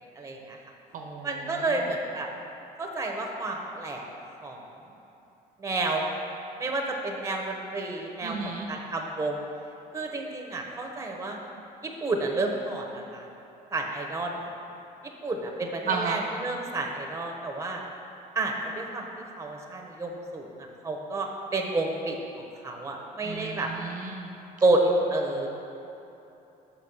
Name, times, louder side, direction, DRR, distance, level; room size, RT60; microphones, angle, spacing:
voice 1, 0.2-0.6 1.2-2.3 2.8-4.0 4.4-4.6 5.6-6.1 6.6-9.4 9.9-11.4 11.8-13.3 13.7-14.3 15.2-17.8 18.3-19.1 19.4-22.2 22.6-23.7 24.6-25.5, right 2 dB, 15° right, 1 dB, 0.9 m, -30 dB
voice 2, 0.9-1.9 8.2-8.7 15.9-16.2 23.2-24.3, right 5 dB, 55° right, 1 dB, 0.8 m, -34 dB
5.8 x 5.4 x 6.0 m, 2.9 s
cardioid pair, 110°, 17 cm